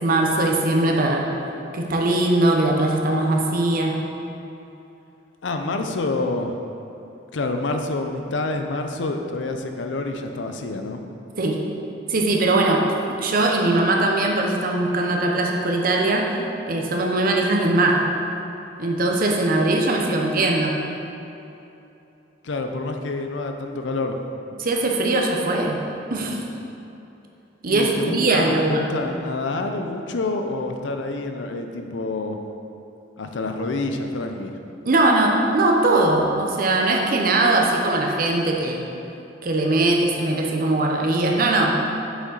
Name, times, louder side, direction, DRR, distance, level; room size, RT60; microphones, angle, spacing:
voice 1, 0.0-1.3 1.7-4.1 11.4-11.6 12.1-16.3 16.7-18.0 18.8-20.8 24.6-25.8 26.1-26.4 27.6-28.9 34.8-38.9 39.4-41.7, right 2 dB, 50° right, 1 dB, 0.7 m, -20 dB
voice 2, 5.4-6.5 7.3-11.0 22.4-24.2 27.7-32.4 33.2-34.6, left 2 dB, 70° left, 5 dB, 0.5 m, -27 dB
6.6 x 5.1 x 4.0 m, 2.8 s
head